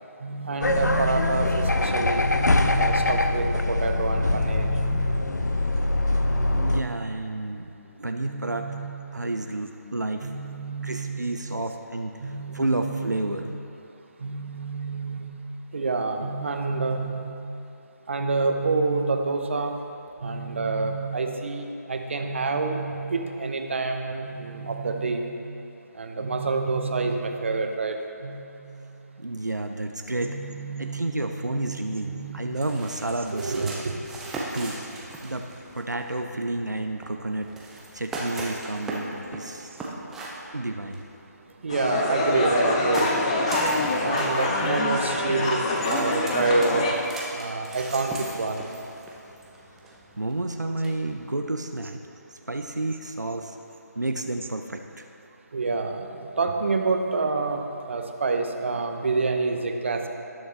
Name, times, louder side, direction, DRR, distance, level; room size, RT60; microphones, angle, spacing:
voice 1, 0.2-5.2 6.2-6.7 8.2-9.1 10.2-11.2 12.2-13.2 14.2-15.2 15.7-17.2 18.1-19.8 20.2-25.2 26.0-27.9 28.2-28.5 30.2-31.0 31.4-31.8 32.0-32.4 33.3-34.0 41.6-43.1 44.0-46.9 47.3-48.1 48.4-48.6 55.5-56.1 56.4-57.6 57.9-60.1, right 3 dB, 45° right, 4 dB, 0.8 m, -28 dB
sound 1, 0.6-6.8, left 2 dB, 75° left, 0.6 m, -23 dB
voice 2, 6.5-7.7 8.0-8.7 9.1-10.3 10.8-13.5 29.2-30.4 30.8-33.8 34.5-34.8 35.2-37.5 37.9-39.7 40.5-41.0 50.2-52.0 52.3-53.6 54.0-55.1, right 2 dB, 85° right, 5 dB, 0.6 m, -30 dB
sound 2, 32.5-51.3, right 2 dB, 5° right, 0.4 m, -39 dB
sound 3, 41.7-46.9, left 2 dB, 20° left, 0.7 m, -25 dB
18.5 x 6.4 x 3.2 m, 2.7 s
figure-of-eight pair, 150°, 9 cm